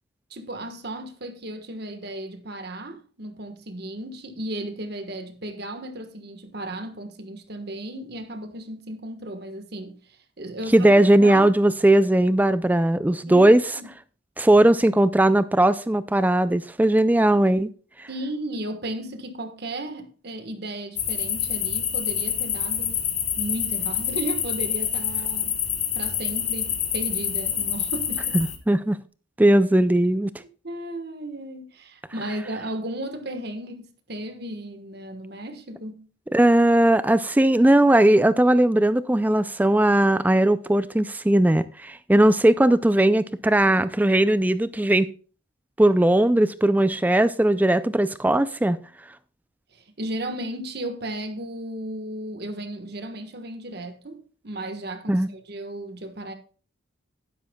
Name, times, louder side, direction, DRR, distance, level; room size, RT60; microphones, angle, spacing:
voice 1, 0.3-10.9 11.2-11.5 13.3-13.9 18.1-23.0 23.4-25.6 25.9-28.4 30.4-36.1 49.7-56.3, right 1 dB, 50° right, 1.3 m, -35 dB
voice 2, 10.7-13.6 14.4-17.7 18.0-18.1 28.3-29.0 29.4-30.3 36.3-45.1 45.8-48.8 55.1-55.3, right 1 dB, 10° right, 0.3 m, -18 dB
sound 1, 21.0-28.6, left 9 dB, 35° left, 1.2 m, -27 dB
11.5 x 10.5 x 2.3 m
head